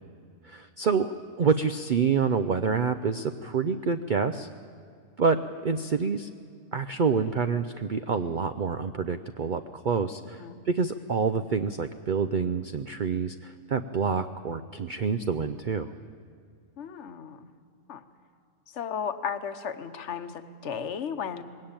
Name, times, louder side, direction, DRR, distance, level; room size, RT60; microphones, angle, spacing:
voice 1, 0.4-4.5 5.2-6.3 6.7-15.9, right 5 dB, 80° right, 9 dB, 0.4 m, -27 dB
voice 2, 16.8-17.5 17.9-18.0 18.7-21.4, left 7 dB, 55° left, 10 dB, 1.1 m, -34 dB
20.5 x 17.0 x 8.9 m, 2.3 s
omnidirectional pair, 1.6 m